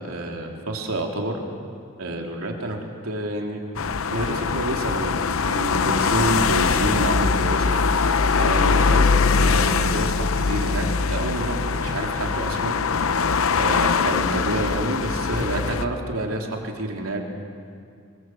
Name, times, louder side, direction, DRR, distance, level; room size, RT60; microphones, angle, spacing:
voice 1, 0.0-1.4 2.0-2.8 3.0-3.6 4.1-7.8 8.4-12.8 13.6-17.3, right 1 dB, 85° right, 1 dB, 3.4 m, -28 dB
sound 1, 3.8-15.8, left 5 dB, 75° left, 0.7 m, -22 dB
25.0 x 23.0 x 7.9 m, 2.2 s
head